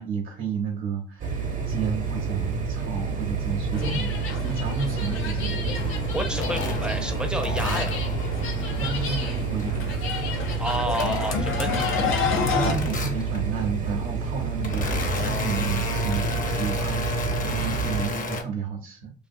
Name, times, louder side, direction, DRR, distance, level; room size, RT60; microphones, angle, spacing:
voice 1, 0.0-5.8 8.8-9.9 12.5-19.1, right 5 dB, 90° right, 0 dB, 0.7 m, -32 dB
sound 1, 1.2-18.1, right 5 dB, 45° right, 0.7 m, -29 dB
sound 2, 3.7-12.7, left 5 dB, 85° left, 0.6 m, -30 dB
sound 3, 5.8-9.9 10.2-12.3 12.6-13.5 14.1-18.4, left 3 dB, 45° left, 0.7 m, -33 dB
voice 2, 6.1-7.9 10.6-11.8, right 1 dB, 5° right, 4 dB, 0.5 m, -30 dB
2.5 x 2.3 x 2.6 m, 0.36 s
cardioid pair, 90°, 20 cm